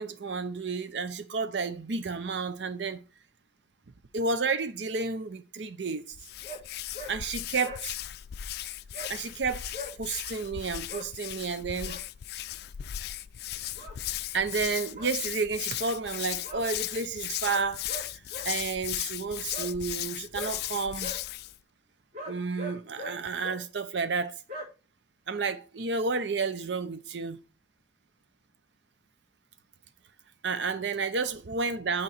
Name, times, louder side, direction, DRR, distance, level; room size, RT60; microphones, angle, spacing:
voice 1, 0.0-3.0 4.1-6.2 7.1-8.0 9.1-12.0 14.3-17.9 18.4-21.1 22.3-24.4 25.3-27.4 30.4-32.0, right 4 dB, 75° right, 0.7 m, -31 dB
Hands, 6.1-21.6, left 13 dB, 60° left, 0.3 m, -37 dB
sound 1, 6.4-6.6 6.9-7.1 7.4-7.8 8.9-9.1 9.7-9.9 10.9-11.1 11.6-12.0 13.7-14.0 14.9-15.1 16.4-16.6 17.4-18.5 19.5-19.7 20.3-20.5 21.0-21.2 22.1-23.1 23.4-23.6 24.5-24.6, equal, 45° right, 3.5 m, -40 dB
6.4 x 4.4 x 4.3 m
head